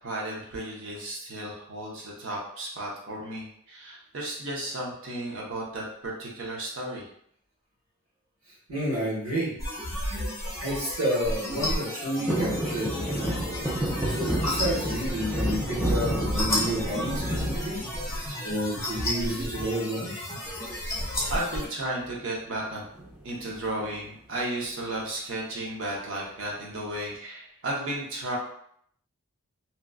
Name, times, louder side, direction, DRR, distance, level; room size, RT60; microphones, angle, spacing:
voice 1, 0.0-7.1 21.3-22.8 23.2-28.4, right 1 dB, 65° right, -3 dB, 0.8 m, -34 dB
voice 2, 8.7-9.5 10.6-13.3 14.1-17.8 18.1-20.1, equal, 90° right, -7 dB, 1.5 m, -30 dB
sound 1, 9.6-21.7, left 1 dB, 15° left, 0.7 m, -32 dB
sound 2, 12.3-18.5 18.9-19.5 20.8-21.2 21.4-21.5 21.8-22.1 23.0-23.9 24.3-24.4, right 1 dB, 5° right, 0.4 m, -30 dB
2.9 x 2.4 x 2.2 m, 0.66 s
head